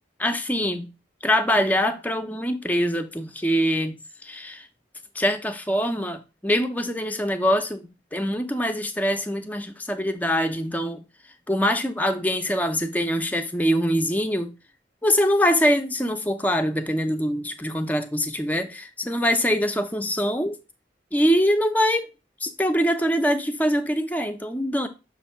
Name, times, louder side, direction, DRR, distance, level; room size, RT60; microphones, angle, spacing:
voice 1, 0.2-0.9 1.2-4.7 5.1-11.0 11.5-14.5 15.0-20.6 21.1-22.1 22.4-24.9, equal, 10° left, 0.6 m, -24 dB
6.6 x 2.6 x 5.6 m
head